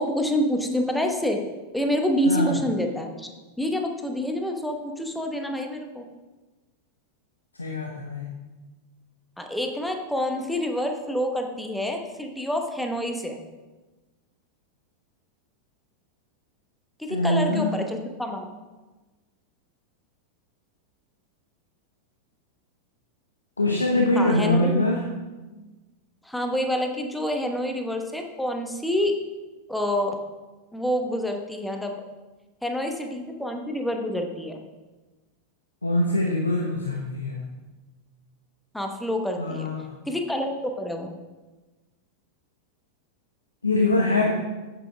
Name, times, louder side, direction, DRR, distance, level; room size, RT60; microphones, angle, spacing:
voice 1, 0.0-1.4 1.7-3.3 3.6-6.0 9.4-13.4 17.0-18.5 24.1-24.8 26.2-29.1 29.7-30.2 30.7-32.0 32.6-34.6 38.7-39.7 40.1-41.1, equal, 5° left, 4 dB, 1.0 m, -27 dB
voice 2, 7.6-8.3 17.1-17.8 23.6-25.0 35.8-37.5 39.4-39.9 43.6-44.3, left 2 dB, 80° left, 1 dB, 0.9 m, -23 dB
8.4 x 8.2 x 3.4 m, 1.2 s
figure-of-eight pair, 90°, 0 cm